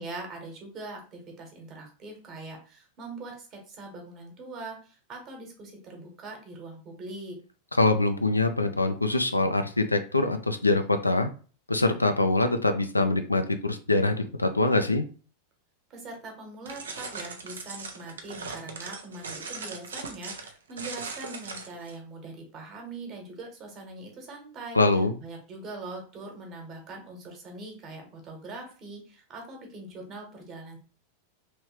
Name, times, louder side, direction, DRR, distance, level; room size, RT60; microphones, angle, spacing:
voice 1, 0.0-7.4 15.9-24.8 25.2-30.8, right 2 dB, 35° right, 2 dB, 1.2 m, -42 dB
voice 2, 7.8-11.3 11.7-15.0 24.7-25.1, left 2 dB, 85° left, 7 dB, 0.4 m, -24 dB
sound 1, 16.7-22.0, right 4 dB, 65° right, 0.6 m, -39 dB
3.1 x 3.1 x 3.0 m, 0.38 s
figure-of-eight pair, 90°, 0 cm